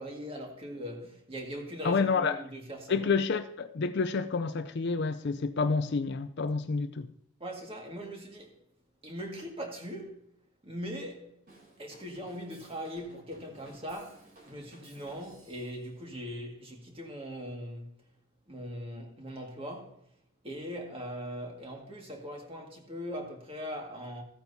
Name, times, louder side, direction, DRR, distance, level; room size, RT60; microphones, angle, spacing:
voice 1, 0.0-3.0 7.4-8.6 9.0-10.2 10.6-11.3 11.8-17.9 18.5-20.0 20.4-24.2, equal, 25° right, 1.9 m, -40 dB
voice 2, 1.8-2.4 2.9-7.1, left 4 dB, 50° left, 0.4 m, -29 dB
Drum kit / Drum, 11.5-15.9, right 2 dB, 45° right, 3.3 m, -56 dB
15.0 x 8.9 x 2.7 m
head